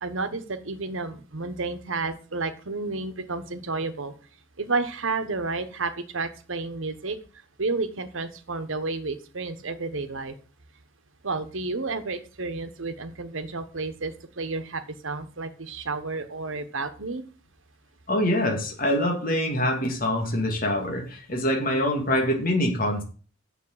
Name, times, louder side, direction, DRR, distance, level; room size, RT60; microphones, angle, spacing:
voice 1, 0.0-4.1 4.6-7.2 7.6-10.3 11.2-17.2, right 3 dB, 75° right, 9 dB, 1.2 m, -31 dB
voice 2, 18.1-23.0, left 1 dB, 45° left, 1 dB, 2.3 m, -25 dB
7.4 x 6.6 x 8.0 m, 0.39 s
head